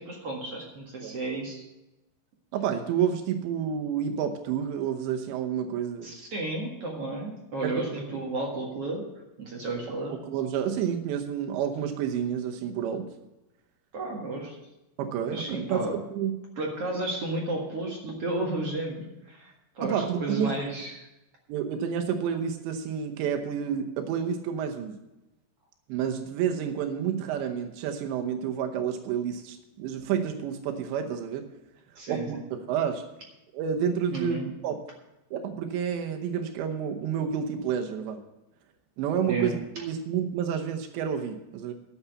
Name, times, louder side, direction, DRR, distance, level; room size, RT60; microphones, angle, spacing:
voice 1, 0.0-1.7 6.0-9.0 9.4-10.2 13.9-14.6 15.3-15.9 16.6-21.1 32.0-32.4 34.1-34.4 39.3-39.5, right 2 dB, 50° right, -1 dB, 2.0 m, -32 dB
voice 2, 2.5-6.1 7.6-7.8 10.2-13.1 15.0-16.3 19.8-20.7 21.5-25.0 25.9-31.4 32.1-33.0 33.5-34.8 35.3-38.2 39.0-41.7, right 8 dB, 90° right, 5 dB, 3.3 m, -29 dB
11.5 x 7.1 x 8.1 m, 0.95 s
omnidirectional pair, 4.9 m